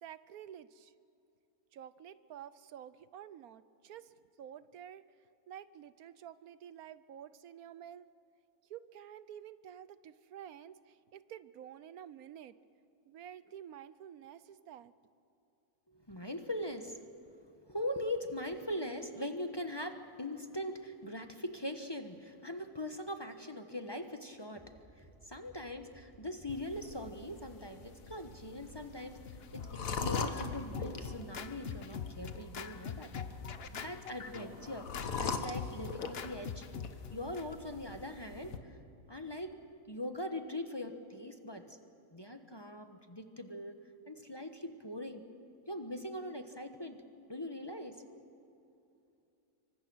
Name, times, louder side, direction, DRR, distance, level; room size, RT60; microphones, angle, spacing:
voice 1, 0.0-0.9 1.7-5.0 5.5-8.1 8.7-12.6 13.1-14.9, right 10 dB, 75° right, 15 dB, 1.2 m, -50 dB
voice 2, 15.9-17.0 17.7-29.2 29.5-33.1 33.7-36.7 37.1-38.8 39.1-39.6 39.9-41.8 42.1-43.8 44.1-45.2 45.7-47.0 47.3-48.2, left 1 dB, 20° left, 6 dB, 1.1 m, -41 dB
sound 1, 24.5-31.9, right 2 dB, 10° right, 5.8 m, -60 dB
sound 2, 26.5-38.6, left 5 dB, 65° left, 1.7 m, -42 dB
Scratching (performance technique), 29.0-37.4, left 6 dB, 45° left, 1.1 m, -44 dB
26.5 x 24.5 x 6.3 m, 2.8 s
omnidirectional pair, 1.6 m